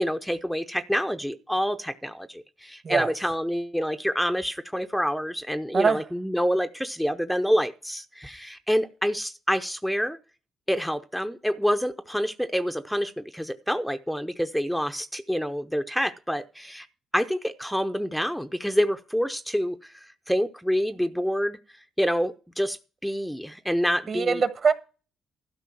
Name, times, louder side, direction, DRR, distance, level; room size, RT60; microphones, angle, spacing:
voice 1, 0.0-10.2 10.7-16.9 17.1-19.9 20.3-21.6 22.0-22.8 23.0-24.4, equal, ahead, 0.6 m, -27 dB
voice 2, 24.1-24.7, right 5 dB, 50° right, 1.4 m, -23 dB
12.5 x 5.1 x 7.5 m
cardioid pair, 90°, 0 cm